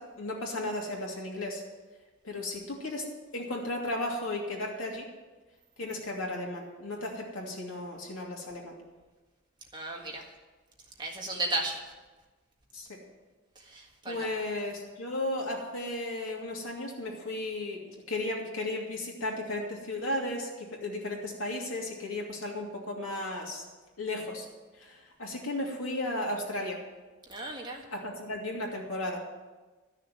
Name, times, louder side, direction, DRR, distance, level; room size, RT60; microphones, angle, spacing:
voice 1, 0.0-1.6 2.2-3.1 3.3-5.1 5.8-8.8 12.7-13.0 14.1-23.6 24.0-24.4 24.8-26.8 27.9-29.2, left 1 dB, 75° left, -1 dB, 2.7 m, -35 dB
voice 2, 9.7-10.2 11.0-11.8 13.7-14.3 27.3-27.8, right 2 dB, 20° right, 0 dB, 1.7 m, -34 dB
13.0 x 6.6 x 9.3 m, 1.2 s
head